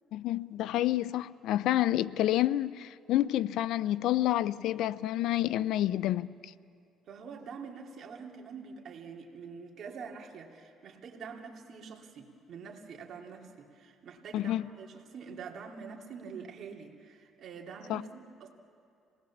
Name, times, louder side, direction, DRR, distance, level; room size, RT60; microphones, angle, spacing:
voice 1, 0.1-6.3 14.3-14.7 17.9-18.0, left 14 dB, 80° left, 0.5 m, -29 dB
voice 2, 7.1-18.5, right 5 dB, 55° right, 2.6 m, -45 dB
26.5 x 19.0 x 7.2 m
cardioid pair, 115°, 0 cm